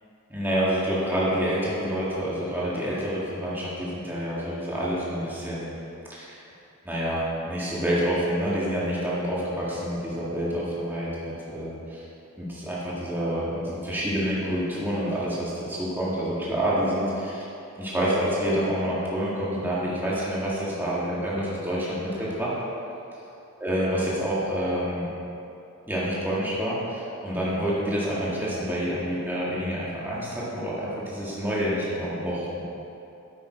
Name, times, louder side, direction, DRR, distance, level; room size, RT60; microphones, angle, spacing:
voice 1, 0.3-5.7 6.1-6.4 6.8-12.0 12.4-17.4 17.8-22.5 23.6-25.1 25.9-32.6, equal, 10° right, -8 dB, 1.9 m, -28 dB
9.7 x 8.8 x 4.4 m, 2.8 s
head